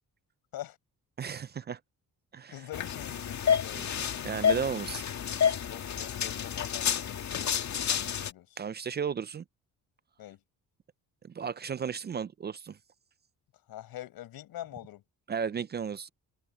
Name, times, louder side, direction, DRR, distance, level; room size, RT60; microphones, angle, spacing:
voice 1, 1.2-1.8 2.3-2.6 3.7-5.0 8.6-9.4 11.2-12.8 15.3-16.1, right 7 dB, 30° right, 0.4 m, -34 dB
voice 2, 2.5-4.0 5.7-8.6 10.2-10.4 13.7-15.0, left 14 dB, 90° left, 5.6 m, -44 dB
sound 1, 2.7-8.3, left 8 dB, 50° left, 2.0 m, -30 dB
cardioid pair, 135°, 35 cm